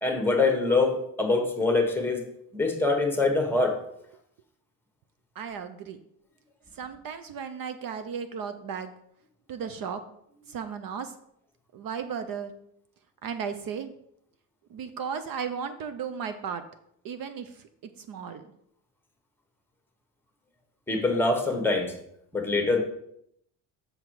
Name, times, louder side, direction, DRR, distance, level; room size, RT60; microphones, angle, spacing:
voice 1, 0.0-2.2 2.5-3.8 20.9-21.9 22.3-22.8, left 3 dB, 5° left, 3 dB, 1.2 m, -24 dB
voice 2, 5.4-6.0 6.7-8.9 9.5-10.0 10.5-11.1 11.7-12.5 13.2-13.9 14.7-16.6 17.0-17.6 18.0-18.4, right 6 dB, 55° right, 9 dB, 0.6 m, -35 dB
6.5 x 5.8 x 4.7 m, 0.74 s
cardioid pair, 140°, 41 cm